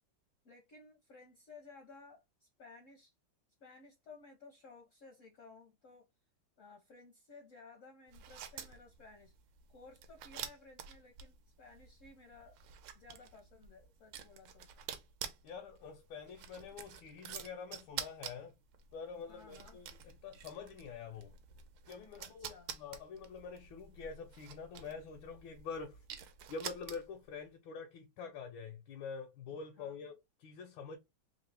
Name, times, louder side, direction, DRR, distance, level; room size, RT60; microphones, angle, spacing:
voice 1, 0.4-3.1 3.6-6.1 6.6-9.3 9.7-12.6 12.9-14.7 19.3-19.8 22.2-22.7 29.5-30.0, left 3 dB, 65° left, 0.7 m, -57 dB
sound 1, 8.1-27.3, right 9 dB, 80° right, 1.3 m, -49 dB
voice 2, 15.4-18.6 18.9-21.3 21.9-26.0 26.5-31.0, left 5 dB, 90° left, 1.5 m, -46 dB
3.6 x 2.7 x 3.2 m
omnidirectional pair, 2.1 m